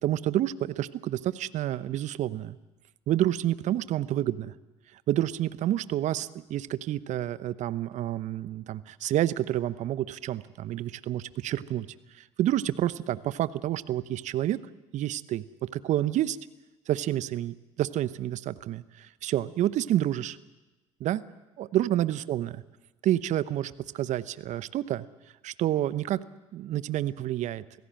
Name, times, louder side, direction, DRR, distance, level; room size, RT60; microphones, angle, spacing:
voice 1, 0.0-2.6 3.1-4.5 4.9-14.6 14.9-16.4 16.9-20.4 21.0-21.2 21.6-22.5 23.0-25.1 25.4-26.2 26.5-27.6, right 13 dB, 55° right, 16 dB, 0.9 m, -29 dB
24.5 x 16.5 x 7.7 m, 1.1 s
hypercardioid pair, 65°, 15 cm